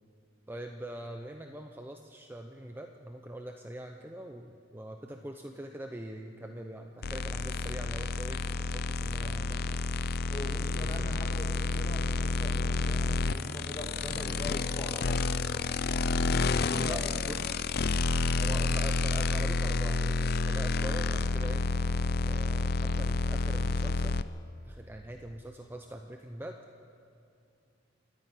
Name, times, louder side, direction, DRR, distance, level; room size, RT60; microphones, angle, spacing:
voice 1, 0.5-8.4 8.7-9.8 10.8-11.1 16.8-17.5 18.4-21.7 22.3-24.2 24.6-26.6, right 1 dB, 10° right, 4 dB, 0.7 m, -43 dB
sound 1, 7.0-24.2, left 3 dB, 55° left, 0.5 m, -29 dB
voice 2, 9.2-9.7 10.2-15.8 16.5-17.6 18.3-18.8 22.8-23.0, left 1 dB, 20° left, 1 dB, 2.5 m, -43 dB
28.5 x 9.9 x 9.3 m, 2.5 s
head